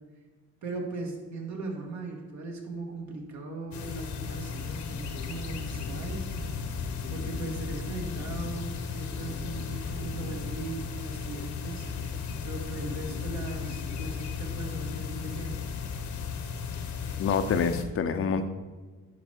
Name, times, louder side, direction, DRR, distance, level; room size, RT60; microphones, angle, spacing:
voice 1, 0.6-6.2 7.1-11.9 12.4-15.6, right 3 dB, 65° right, 1 dB, 1.9 m, -38 dB
sound 1, 3.7-17.8, left 6 dB, 70° left, 1.1 m, -35 dB
sound 2, 5.7-13.6 14.0-14.1, right 3 dB, 45° right, 2.5 m, -49 dB
voice 2, 17.2-18.5, left 6 dB, 45° left, 8 dB, 0.6 m, -26 dB
11.0 x 4.6 x 4.5 m, 1.4 s
cardioid pair, 90°, 30 cm